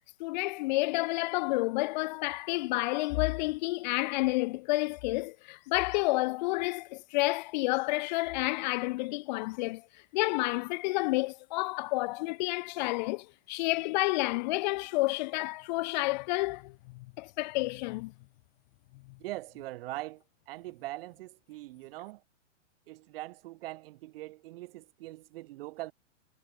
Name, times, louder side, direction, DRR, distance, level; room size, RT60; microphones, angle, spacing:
voice 1, 0.2-9.9 10.1-18.1, left 22 dB, 35° left, 0.8 m, -30 dB
voice 2, 19.2-22.2 22.9-25.9, right 18 dB, 50° right, 1.9 m, -42 dB
hypercardioid pair, 140°, 38 cm